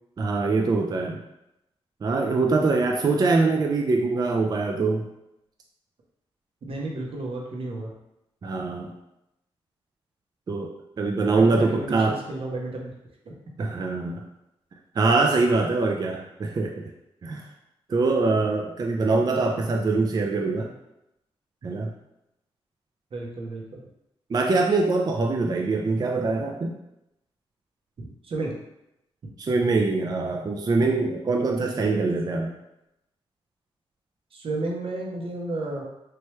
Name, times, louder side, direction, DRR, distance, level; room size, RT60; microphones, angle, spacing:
voice 1, 0.2-1.2 2.0-5.1 8.4-8.9 10.5-10.7 11.0-12.2 13.6-14.2 15.0-16.9 17.2-17.4 17.9-20.7 21.6-21.9 24.3-26.7 29.4-32.5, right 3 dB, 40° right, 1 dB, 0.4 m, -23 dB
voice 2, 6.7-7.9 11.3-12.9 13.2-13.3 13.6-13.7 23.1-23.8 28.0-28.5 31.9-32.0 34.3-35.8, right 2 dB, 60° right, -1 dB, 0.7 m, -32 dB
3.1 x 2.2 x 3.1 m, 0.86 s
cardioid pair, 60°, 11 cm